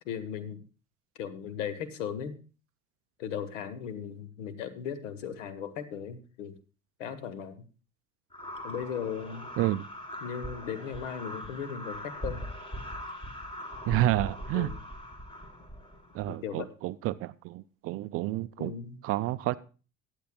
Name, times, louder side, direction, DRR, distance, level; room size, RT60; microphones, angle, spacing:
voice 1, 0.0-0.6 1.2-2.4 3.2-6.6 7.0-7.6 8.6-9.5 10.2-12.5 14.5-14.7 16.3-16.7 18.6-19.0, left 8 dB, 70° left, 1.3 m, -37 dB
sound 1, 8.3-16.4, equal, 15° left, 1.9 m, -41 dB
voice 2, 13.9-14.7 16.1-18.7 19.0-19.6, right 16 dB, 40° right, 0.4 m, -29 dB
21.5 x 8.2 x 2.2 m
figure-of-eight pair, 65°, 39 cm